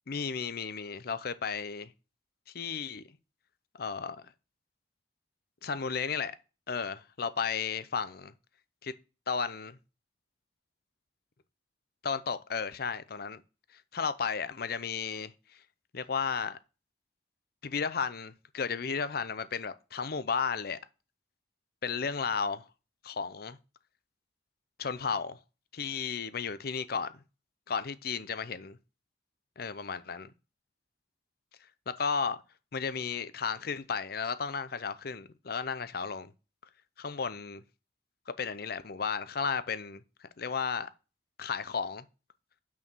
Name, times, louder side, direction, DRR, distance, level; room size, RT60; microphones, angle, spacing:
voice 1, 0.1-1.9 2.5-3.0 3.8-4.2 5.6-6.3 6.7-8.3 8.8-8.9 9.3-9.8 12.0-13.4 13.7-15.6 15.9-16.6 17.6-20.8 21.8-22.7 23.0-23.6 24.8-25.4 25.7-27.1 27.7-28.8 29.6-30.3 31.9-32.4 32.7-36.3 37.0-37.6 38.4-40.9 41.4-42.0, left 5 dB, 55° left, 0.6 m, -34 dB
6.0 x 4.6 x 6.1 m
head